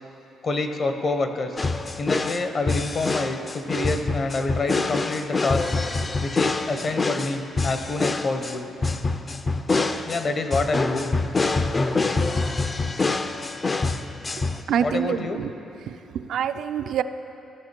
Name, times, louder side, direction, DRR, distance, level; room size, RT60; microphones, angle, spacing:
voice 1, 0.4-1.6 2.0-5.6 6.2-8.7 10.0-11.1 14.8-15.4, left 3 dB, 45° left, 7 dB, 0.8 m, -27 dB
sound 1, 1.6-14.6, left 3 dB, 30° left, 0.4 m, -26 dB
voice 2, 14.4-15.5 15.9-17.0, right 8 dB, 75° right, 10 dB, 0.3 m, -27 dB
15.0 x 5.8 x 4.4 m, 3.0 s
cardioid pair, 90°, 0 cm